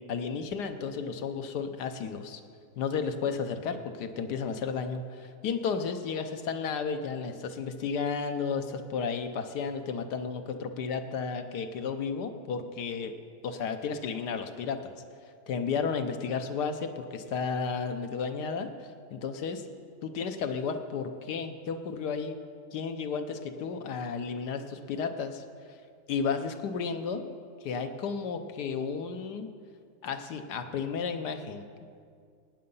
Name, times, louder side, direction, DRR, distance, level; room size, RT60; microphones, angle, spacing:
voice 1, 0.0-2.4 2.8-13.1 13.4-14.9 15.5-18.7 19.1-19.6 20.0-22.4 22.7-25.4 26.1-27.2 27.6-29.5 30.0-31.9, left 5 dB, 85° left, 7 dB, 1.5 m, -33 dB
16.5 x 9.6 x 5.5 m, 2.2 s
omnidirectional pair, 1.7 m